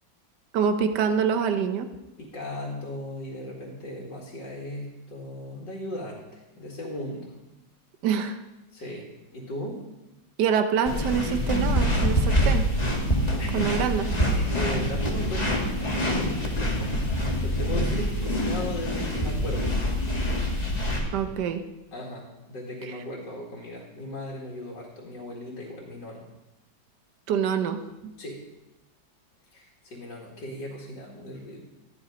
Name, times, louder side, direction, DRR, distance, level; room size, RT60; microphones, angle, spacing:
voice 1, 0.5-1.9 8.0-8.4 10.4-12.7 13.5-14.1 21.1-21.6 27.3-28.1, right 7 dB, 70° right, 8 dB, 1.5 m, -25 dB
voice 2, 2.2-7.4 8.7-9.8 13.4-13.8 14.2-19.7 21.9-26.3 28.2-28.4 29.5-31.6, left 1 dB, 75° left, -4 dB, 2.7 m, -37 dB
sound 1, 10.9-21.0, equal, 20° left, 2.1 m, -25 dB
13.5 x 11.0 x 5.1 m, 1.0 s
omnidirectional pair, 1.9 m